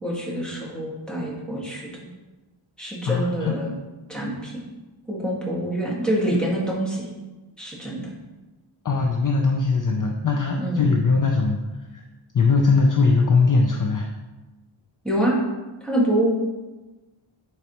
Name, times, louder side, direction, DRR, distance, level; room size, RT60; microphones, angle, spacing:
voice 1, 0.0-1.9 2.8-3.7 4.1-4.6 5.1-7.1 7.6-8.1 10.6-10.9 15.0-15.4 15.8-16.3, right 1 dB, ahead, -6 dB, 1.7 m, -26 dB
voice 2, 3.0-3.5 8.8-11.6 11.9-12.0 12.3-14.1, left 4 dB, 40° left, 1 dB, 0.6 m, -20 dB
8.4 x 4.8 x 3.0 m, 1.1 s
wide cardioid pair, 140°, 50 cm